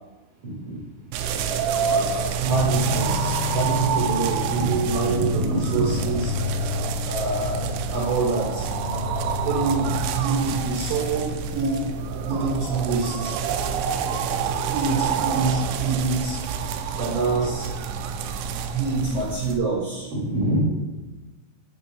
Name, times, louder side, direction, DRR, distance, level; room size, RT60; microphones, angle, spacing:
voice 1, 0.4-0.8 1.3-1.4 4.4-5.8 6.4-6.6 14.9-15.0 20.1-20.6, right 1 dB, 35° right, -2 dB, 2.7 m, -27 dB
sound 1, 1.1-19.6, right 7 dB, 85° right, 3.1 m, -28 dB
voice 2, 1.9-6.3 7.0-8.7 9.4-11.9 12.2-13.4 14.6-16.4 16.8-17.7 18.7-20.1, right 4 dB, 65° right, -3 dB, 2.8 m, -26 dB
sound 2, 2.5-12.4 12.7-15.9, left 8 dB, 85° left, 2.9 m, -33 dB
7.0 x 6.6 x 7.1 m, 1.2 s
omnidirectional pair, 5.4 m